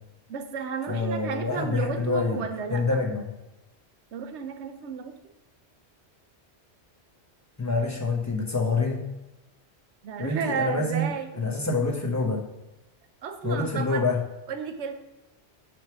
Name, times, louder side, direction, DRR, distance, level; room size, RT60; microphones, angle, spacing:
voice 1, 0.3-3.0 4.1-5.2 10.0-11.5 13.2-14.0 14.5-14.9, right 6 dB, 90° right, 7 dB, 1.0 m, -33 dB
voice 2, 0.9-2.4 2.7-3.3 7.6-9.0 10.2-12.4 13.4-14.2, left 3 dB, 15° left, 0 dB, 0.9 m, -26 dB
6.2 x 3.6 x 6.0 m, 1.0 s
omnidirectional pair, 1.1 m